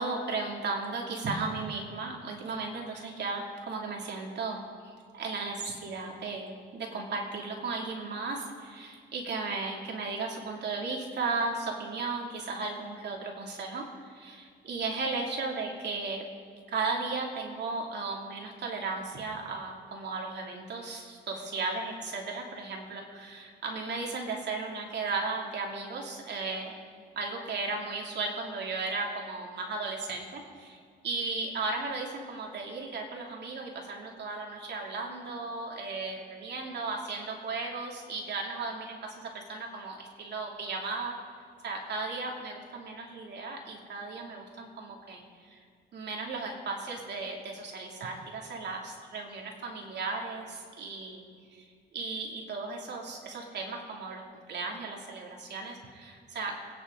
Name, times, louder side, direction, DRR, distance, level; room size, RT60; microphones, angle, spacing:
voice 1, 0.0-4.6 5.1-16.2 16.7-26.7 27.1-41.1 41.6-45.6 45.9-51.6 51.9-54.2 54.5-56.5, right 3 dB, 60° right, 0 dB, 3.0 m, -35 dB
26.0 x 9.9 x 4.0 m, 2.1 s
cardioid pair, 90°, 20 cm